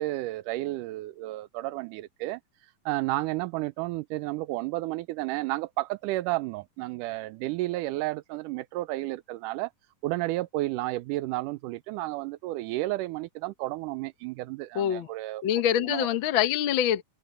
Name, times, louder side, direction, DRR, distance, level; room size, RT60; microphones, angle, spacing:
voice 1, 0.0-2.4 2.9-9.7 10.0-15.4 15.9-16.1, right 18 dB, 85° right, 2.1 m, -32 dB
voice 2, 14.7-15.1 15.4-17.0, left 10 dB, 60° left, 1.3 m, -25 dB
open air
omnidirectional pair, 3.7 m